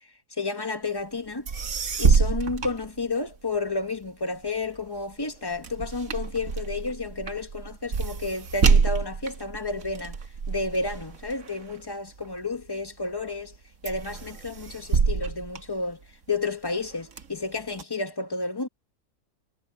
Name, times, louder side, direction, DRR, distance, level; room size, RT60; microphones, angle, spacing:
voice 1, 0.4-1.5 2.0-10.2 10.5-13.5 13.8-16.0 16.3-18.7, left 3 dB, 15° left, 1.4 m, -31 dB
sound 1, 1.2-1.3 1.5-3.6 4.0-12.7 13.2-13.6 13.9-16.3 16.8-17.8, right 5 dB, 70° right, 1.8 m, -27 dB
omnidirectional pair, 1.5 m